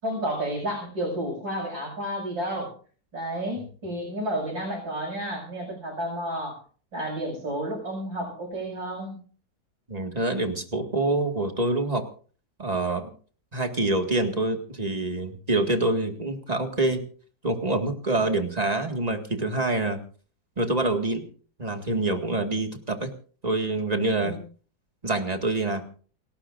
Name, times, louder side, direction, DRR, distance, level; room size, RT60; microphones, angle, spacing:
voice 1, 0.0-2.7 3.1-6.6 6.9-9.2 18.1-18.3 24.2-24.4, right 1 dB, 85° right, -3 dB, 7.4 m, -31 dB
voice 2, 9.9-12.0 12.6-13.1 13.5-17.0 17.4-20.0 20.6-21.2 21.6-23.1 23.4-24.4 25.0-25.9, right 2 dB, 20° right, 5 dB, 1.9 m, -26 dB
29.0 x 12.5 x 2.6 m, 0.42 s
omnidirectional pair, 2.0 m